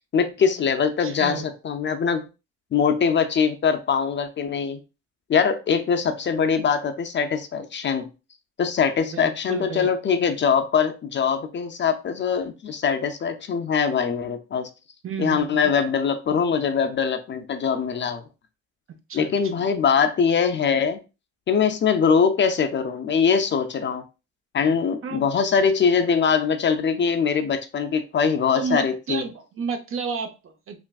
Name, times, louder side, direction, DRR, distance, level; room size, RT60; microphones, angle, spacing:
voice 1, 0.1-2.2 2.7-4.8 5.3-8.1 8.6-14.7 15.2-18.2 19.1-21.0 21.5-24.0 24.5-29.2, left 6 dB, 40° left, 0.4 m, -22 dB
voice 2, 1.0-1.5 9.1-9.9 15.0-15.7 18.9-19.3 19.6-19.7 25.0-25.3 28.5-30.9, right 5 dB, 45° right, 0.6 m, -32 dB
3.4 x 2.4 x 2.3 m
cardioid pair, 90°, 30 cm